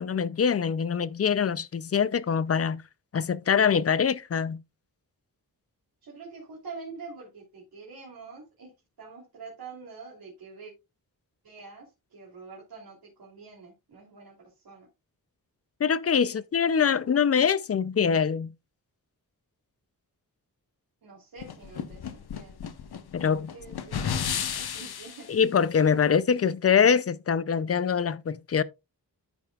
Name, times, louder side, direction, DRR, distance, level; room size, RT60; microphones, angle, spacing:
voice 1, 0.0-2.8 3.1-4.6 15.8-18.5 23.1-23.5 25.3-28.6, left 7 dB, 40° left, 0.4 m, -24 dB
voice 2, 6.0-8.7 9.0-10.7 11.4-14.9 16.3-16.4 21.0-22.6 23.3-25.3, right 4 dB, 80° right, 3.0 m, -46 dB
sound 1, 21.4-25.3, left 7 dB, 80° left, 1.0 m, -33 dB
14.0 x 5.3 x 2.3 m
wide cardioid pair, 160°, 37 cm